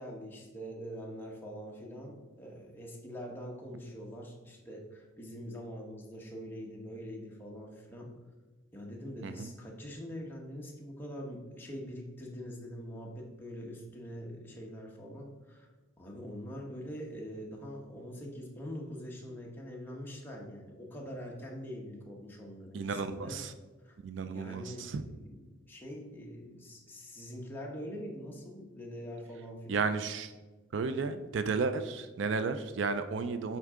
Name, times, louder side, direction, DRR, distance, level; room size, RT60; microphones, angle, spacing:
voice 1, 0.0-8.1 8.7-15.7 16.0-23.4 23.8-24.0 24.2-25.0 25.2-25.4 25.7-29.9, equal, 10° left, -2 dB, 1.1 m, -44 dB
voice 2, 22.7-23.5 24.0-25.0 29.7-30.3 30.7-33.6, right 4 dB, 65° right, 10 dB, 0.4 m, -33 dB
8.0 x 4.5 x 3.7 m, 1.2 s
head